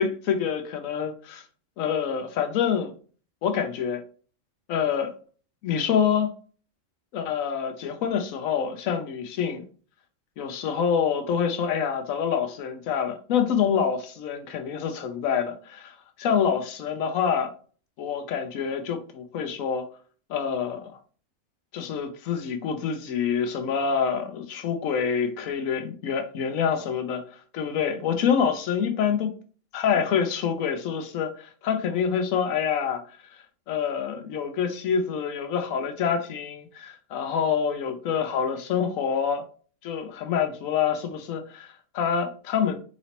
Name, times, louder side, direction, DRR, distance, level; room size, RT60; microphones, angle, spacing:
voice 1, 0.0-1.4 1.8-2.9 3.4-4.0 4.7-5.1 5.6-6.3 7.1-9.6 10.4-17.5 18.0-19.9 20.3-21.0 21.7-29.3 29.7-39.4 39.8-42.8, left 7 dB, 85° left, 1.1 m, -26 dB
4.2 x 3.0 x 2.8 m
omnidirectional pair, 1.4 m